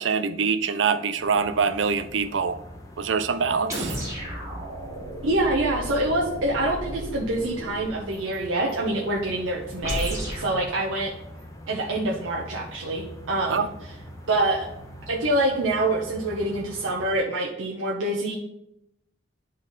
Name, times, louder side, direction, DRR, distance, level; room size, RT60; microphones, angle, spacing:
voice 1, 0.0-2.6 3.0-4.0 13.5-13.7, right 5 dB, 65° right, 0.5 m, -24 dB
sound 1, 1.2-17.2, equal, 15° left, 1.1 m, -43 dB
sound 2, 3.7-8.0 9.8-10.5, right 1 dB, 15° right, 2.6 m, -33 dB
voice 2, 5.2-11.1 11.7-13.7 14.3-14.7 15.1-18.4, right 1 dB, 85° right, 0.9 m, -26 dB
9.9 x 4.0 x 4.1 m
head